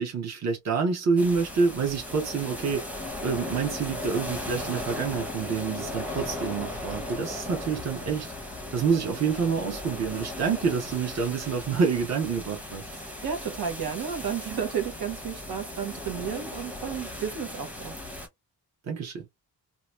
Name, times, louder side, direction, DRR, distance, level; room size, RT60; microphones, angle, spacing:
voice 1, 0.0-2.8 3.2-8.3 8.7-12.8 18.8-19.2, right 5 dB, 45° right, 1.0 m, -27 dB
sound 1, 1.2-18.3, left 1 dB, 5° right, 0.8 m, -37 dB
voice 2, 12.9-18.0, right 7 dB, 80° right, 1.3 m, -32 dB
2.9 x 2.4 x 3.1 m
wide cardioid pair, 160°, 37 cm